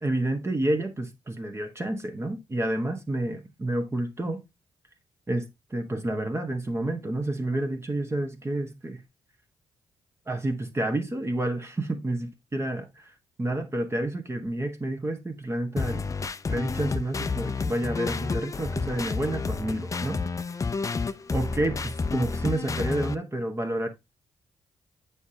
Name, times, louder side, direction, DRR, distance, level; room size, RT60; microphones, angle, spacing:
voice 1, 0.0-4.4 5.3-9.0 10.3-16.0 16.5-20.2 21.3-23.9, right 1 dB, 25° right, 1.2 m, -29 dB
sound 1, 15.8-23.2, left 4 dB, 30° left, 0.5 m, -30 dB
7.1 x 5.0 x 2.8 m
supercardioid pair, 60°, 11 cm